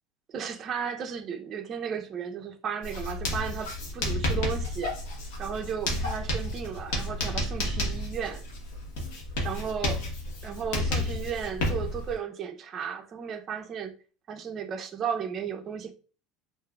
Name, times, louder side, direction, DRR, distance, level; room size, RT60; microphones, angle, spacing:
voice 1, 0.3-4.9 5.4-8.4 9.4-10.0 10.4-13.9 14.3-15.9, right 7 dB, 35° right, 0.6 m, -34 dB
Writing, 2.8-12.1, left 1 dB, 80° left, 1.2 m, -31 dB
3.5 x 2.5 x 2.3 m
supercardioid pair, 135°, 0 cm